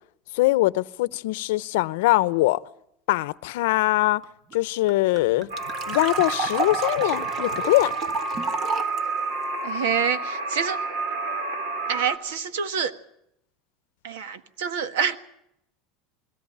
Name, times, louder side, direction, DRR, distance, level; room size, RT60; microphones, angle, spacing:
voice 1, 0.3-2.6 3.1-4.2 4.5-5.5 5.9-8.0, left 19 dB, 80° left, 18 dB, 0.7 m, -22 dB
sound 1, 4.2-4.3 4.5-4.6 4.9-9.0, right 3 dB, 35° right, 1.8 m, -31 dB
sound 2, 5.5-12.2, right 3 dB, 70° right, 4.2 m, -29 dB
voice 2, 9.6-10.8 11.9-12.9 14.0-15.2, right 7 dB, 90° right, 12 dB, 1.6 m, -27 dB
21.5 x 17.0 x 8.7 m, 0.76 s
supercardioid pair, 145°, 0 cm